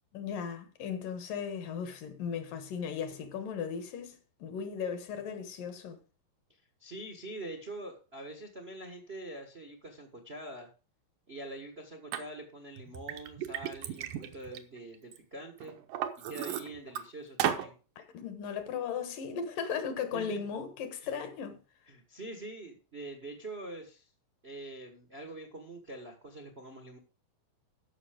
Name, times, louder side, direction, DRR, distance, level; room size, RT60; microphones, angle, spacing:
voice 1, 0.1-6.0 18.0-21.6, left 7 dB, 75° left, 3.0 m, -37 dB
voice 2, 6.5-10.7 11.3-15.8 16.3-17.7 20.1-20.4 21.0-21.1 21.9-24.1 24.4-27.0, right 2 dB, 50° right, 0.7 m, -44 dB
Liquid, 12.1-12.2 12.8-15.2 15.6-17.0 17.4-17.7, right 10 dB, 75° right, 2.6 m, -35 dB
14.0 x 5.7 x 5.1 m
omnidirectional pair, 3.9 m